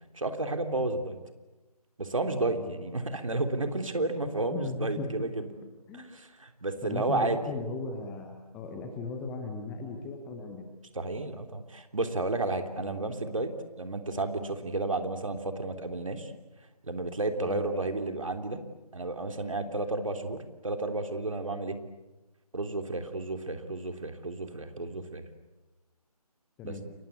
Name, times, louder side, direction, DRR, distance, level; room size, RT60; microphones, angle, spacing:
voice 1, 0.1-1.2 2.0-5.5 5.9-7.4 10.9-13.5 13.8-16.3 16.8-18.6 18.9-21.8 22.5-25.2 26.6-26.7, right 2 dB, 55° right, 6 dB, 3.4 m, -32 dB
voice 2, 4.3-5.1 5.9-6.1 6.8-10.6 12.8-13.0 17.4-17.7 26.6-26.8, left 3 dB, 5° left, 4 dB, 0.9 m, -37 dB
29.5 x 24.0 x 8.3 m, 1.1 s
figure-of-eight pair, 155°, 20 cm